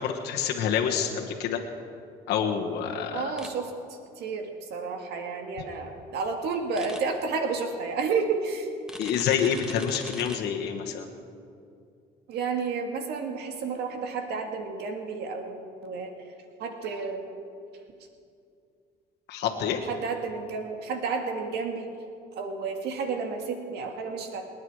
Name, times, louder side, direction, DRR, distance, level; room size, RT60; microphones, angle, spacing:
voice 1, 0.0-1.6 2.3-3.3 9.0-11.1 19.3-19.8, left 8 dB, 80° left, 2 dB, 1.4 m, -27 dB
voice 2, 3.1-3.7 4.2-8.7 12.3-16.1 16.6-17.3 19.9-21.9 22.4-24.4, right 4 dB, 75° right, 4 dB, 1.9 m, -31 dB
sound 1, 3.4-3.5 6.8-7.0 8.9-10.4, equal, 5° right, 1.4 m, -41 dB
27.5 x 9.7 x 4.8 m, 2.4 s
cardioid pair, 110°, 17 cm